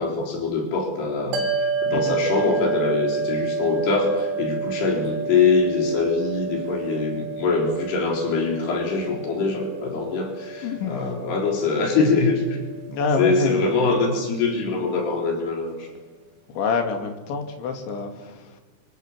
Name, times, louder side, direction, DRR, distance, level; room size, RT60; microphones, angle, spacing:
voice 1, 0.0-1.5 1.8-12.6 13.2-15.9, left 4 dB, 65° left, 2 dB, 6.0 m, -23 dB
sound 1, 1.3-13.8, right 4 dB, 60° right, 3.7 m, -30 dB
voice 2, 10.6-11.2 12.9-13.9 16.5-18.6, left 4 dB, 80° left, 6 dB, 4.6 m, -27 dB
30.0 x 24.5 x 7.4 m, 1.3 s
omnidirectional pair, 5.2 m